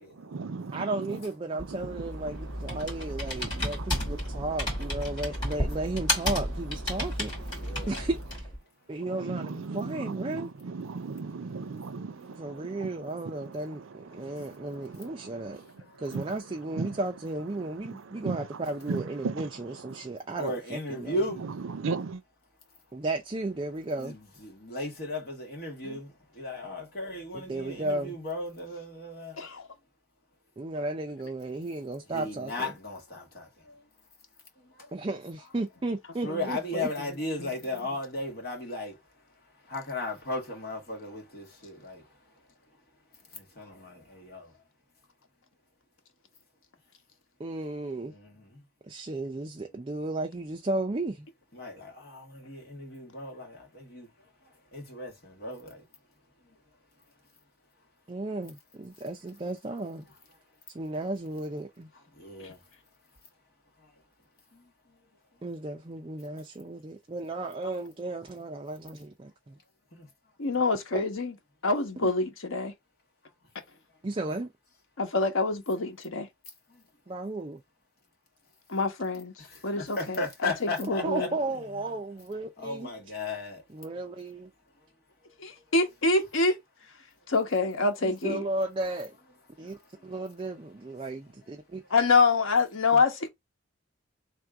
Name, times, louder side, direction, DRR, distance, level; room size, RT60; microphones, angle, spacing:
voice 1, 0.0-1.2 1.5-8.1 9.0-17.0 17.5-20.2 21.3-22.2, right 4 dB, 85° right, 0.5 m, -39 dB
voice 2, 0.7-7.6 7.9-8.5 8.9-10.5 12.4-15.6 16.0-21.2 22.9-24.1 27.3-28.2 30.6-32.7 34.9-36.9 47.4-48.1 48.9-51.3 58.1-60.1 60.7-61.9 65.4-69.6 70.9-71.0 72.0-72.1 74.0-74.5 77.1-77.6 81.0-82.9 83.7-84.5 88.0-89.2 89.6-91.8 92.9-93.0, right 2 dB, 25° right, 0.4 m, -34 dB
Computer keyboard, 1.6-8.6, left 1 dB, 20° left, 2.2 m, -32 dB
voice 3, 7.5-8.0 15.0-15.1 15.9-16.0 20.4-21.4 24.0-29.4 32.1-33.8 34.6-34.9 36.2-39.0 39.6-42.0 43.3-44.5 48.1-48.5 51.5-54.1 54.7-55.8 62.1-62.6 63.8-63.9 64.5-64.6 69.9-70.1 76.7-76.8 79.4-81.3 82.6-83.6 89.6-89.7, left 2 dB, 50° left, 1.8 m, -36 dB
voice 4, 29.4-29.7 36.3-36.8 37.4-37.5 62.4-62.5 70.4-71.3 71.6-72.7 75.0-76.3 78.7-79.3 79.6-81.3 85.4-86.6 87.3-88.4 91.9-93.3, left 3 dB, 90° left, 1.0 m, -26 dB
3.3 x 2.5 x 4.5 m
head